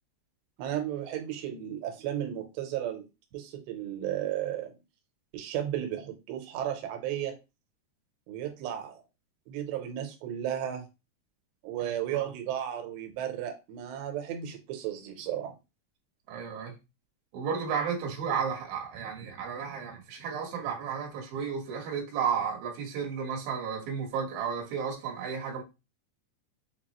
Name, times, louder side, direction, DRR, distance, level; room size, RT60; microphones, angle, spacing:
voice 1, 0.6-3.0 3.3-4.7 5.3-7.3 8.3-9.0 9.5-10.8 11.6-15.5, right 11 dB, 90° right, 2.9 m, -34 dB
voice 2, 16.3-16.7 17.3-25.6, right 6 dB, 65° right, 2.8 m, -33 dB
6.8 x 2.3 x 2.9 m
omnidirectional pair, 4.7 m